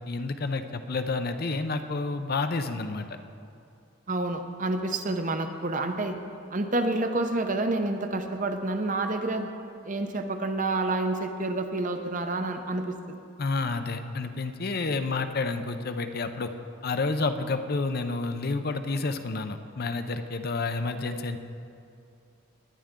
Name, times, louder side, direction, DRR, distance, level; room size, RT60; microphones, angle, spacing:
voice 1, 0.1-3.1 13.4-16.5 16.8-21.4, left 3 dB, 45° left, 8 dB, 0.6 m, -29 dB
voice 2, 4.1-6.1 6.5-9.5 9.9-13.2, right 2 dB, 40° right, 6 dB, 0.8 m, -28 dB
19.5 x 10.0 x 3.7 m, 2.6 s
head